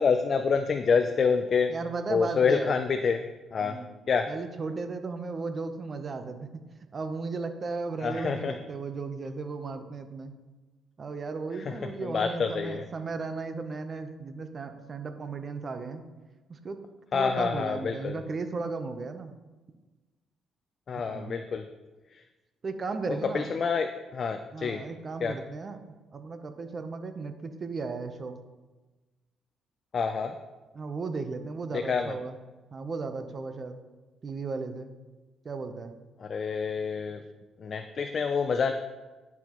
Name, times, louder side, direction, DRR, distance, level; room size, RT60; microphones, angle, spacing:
voice 1, 0.0-1.7 2.1-3.8 4.1-4.3 8.0-8.5 12.1-12.8 17.1-18.2 20.9-21.6 23.3-23.9 24.1-24.8 25.2-25.3 29.9-30.3 31.7-32.1 36.3-37.2 37.6-38.7, left 5 dB, 50° left, 7 dB, 0.5 m, -27 dB
voice 2, 1.7-2.8 3.6-3.9 4.3-6.7 6.9-10.4 11.0-16.1 16.5-16.8 17.1-19.3 21.0-21.4 22.6-23.5 24.5-28.4 30.7-32.4 32.7-33.8 34.2-34.9 35.4-35.9, right 4 dB, 40° right, 8 dB, 0.8 m, -35 dB
11.0 x 5.9 x 3.0 m, 1.2 s
cardioid pair, 90°, 0 cm